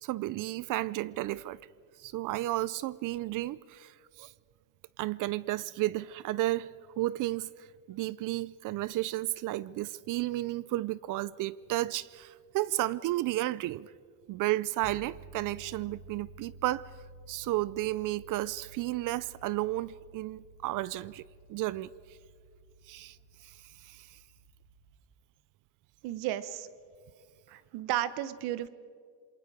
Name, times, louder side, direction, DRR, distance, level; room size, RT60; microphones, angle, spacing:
voice 1, 0.0-1.6 2.0-4.3 5.0-13.9 14.3-16.9 17.3-21.2 21.5-21.9 22.9-23.2 23.4-23.6 23.8-24.2, right 16 dB, 55° right, 0.5 m, -33 dB
sound 1, 14.8-25.0, right 2 dB, 25° right, 2.7 m, -53 dB
voice 2, 26.0-26.7 27.5-28.7, right 13 dB, 70° right, 1.1 m, -33 dB
27.5 x 22.0 x 5.0 m
cardioid pair, 120°, 39 cm